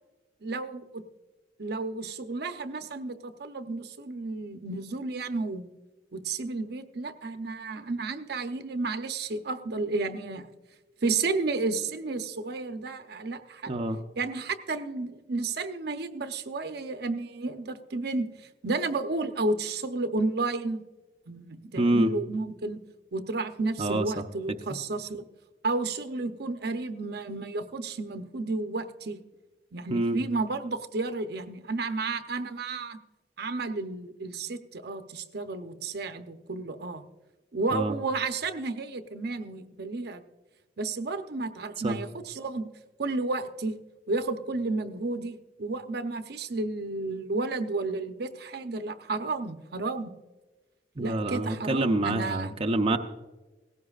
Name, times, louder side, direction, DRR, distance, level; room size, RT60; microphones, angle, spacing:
voice 1, 0.4-1.0 1.6-5.7 6.1-10.5 11.0-13.8 14.2-20.8 21.3-22.8 23.1-25.3 25.6-29.2 29.7-33.0 33.4-37.0 37.5-40.2 40.8-42.7 43.0-43.7 44.1-50.1 51.0-52.6, right 3 dB, 65° right, 8 dB, 0.8 m, -32 dB
voice 2, 13.7-14.0 21.8-22.1 23.8-24.1 29.9-30.2 37.7-38.0 41.8-42.0 51.0-53.0, right 2 dB, 35° right, 4 dB, 0.6 m, -26 dB
18.0 x 16.0 x 2.4 m, 1.2 s
head